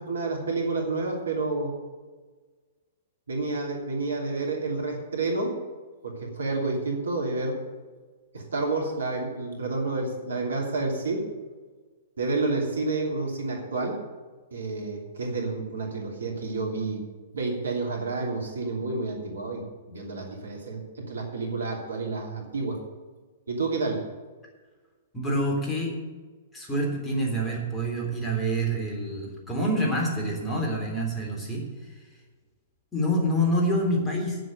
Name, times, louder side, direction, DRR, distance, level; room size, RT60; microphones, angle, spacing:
voice 1, 0.0-1.7 3.3-5.6 6.0-7.6 8.3-11.3 12.2-14.0 14.5-17.0 17.3-22.8 23.5-24.0, right 3 dB, 70° right, 0 dB, 3.0 m, -29 dB
voice 2, 25.1-25.9 26.5-31.7 32.9-34.4, equal, 10° left, -1 dB, 3.4 m, -27 dB
9.4 x 7.9 x 9.0 m, 1.4 s
figure-of-eight pair, 110°, 0 cm